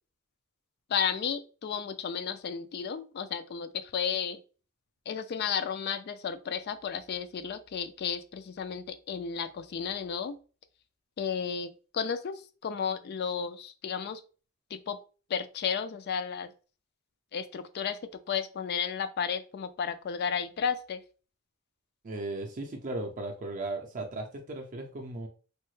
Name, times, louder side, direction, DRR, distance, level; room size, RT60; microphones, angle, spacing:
voice 1, 0.9-4.4 5.1-10.4 11.2-14.2 14.7-15.0 15.3-16.5 17.3-18.0 18.3-21.0, left 7 dB, 50° left, 12 dB, 0.3 m, -33 dB
voice 2, 22.0-25.3, right 2 dB, 40° right, 1 dB, 0.4 m, -36 dB
3.2 x 2.0 x 3.1 m, 0.35 s
head